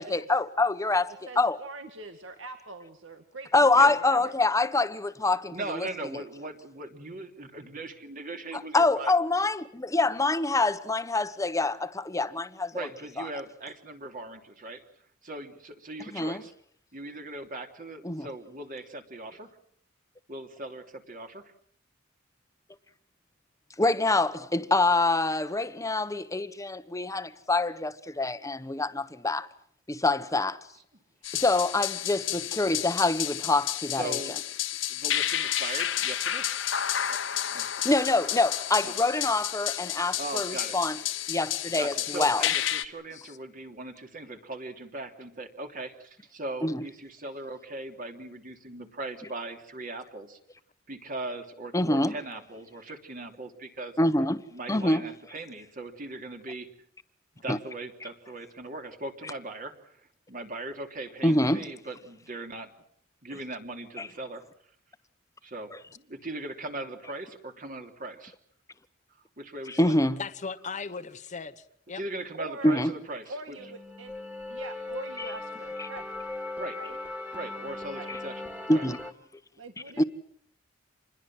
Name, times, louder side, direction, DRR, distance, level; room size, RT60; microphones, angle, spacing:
voice 1, 0.0-1.6 3.5-5.9 8.5-12.7 13.2-13.3 16.1-16.4 18.0-18.3 23.8-29.5 29.9-30.6 31.3-34.2 37.8-41.0 41.3-42.4 46.6-46.8 51.7-52.1 54.0-54.4 54.7-55.0 57.5-57.6 61.2-61.7 64.0-64.1 69.8-70.2 72.6-72.9 75.2-75.3 75.8-75.9 78.1-78.2 78.7-79.0 80.0-80.1, left 2 dB, 15° left, 1.1 m, -25 dB
voice 2, 1.3-4.3 72.4-72.8 73.3-74.1 74.5-76.2 76.7-77.0 77.9-78.1 79.6-80.0, right 2 dB, 75° right, 2.1 m, -43 dB
voice 3, 5.5-9.1 12.7-14.8 15.2-16.5 16.9-19.6 20.3-21.5 33.9-34.4 34.9-36.5 37.1-37.2 37.5-37.7 38.8-38.9 40.2-40.8 41.7-50.4 50.9-53.9 54.5-56.7 57.3-62.7 63.2-64.4 65.4-68.3 69.4-70.0 71.9-73.6 76.6-76.8 77.3-78.8, right 2 dB, 45° right, 3.1 m, -39 dB
sound 1, 31.2-42.8, left 11 dB, 75° left, 1.4 m, -31 dB
voice 4, 70.2-72.0, left 5 dB, 40° left, 1.1 m, -38 dB
sound 2, 73.6-79.1, left 2 dB, 5° right, 2.2 m, -38 dB
27.5 x 21.0 x 7.7 m
head